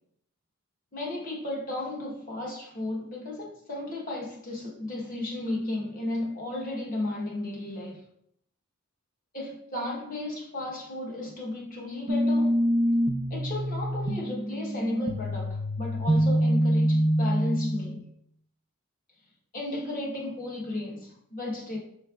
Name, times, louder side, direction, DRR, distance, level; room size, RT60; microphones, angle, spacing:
voice 1, 0.9-8.0 9.3-12.5 13.3-18.0 19.5-21.8, left 1 dB, 40° left, -3 dB, 1.1 m, -34 dB
sound 1, 12.1-18.0, equal, 20° right, 0.6 m, -25 dB
5.8 x 3.2 x 2.4 m, 0.69 s
head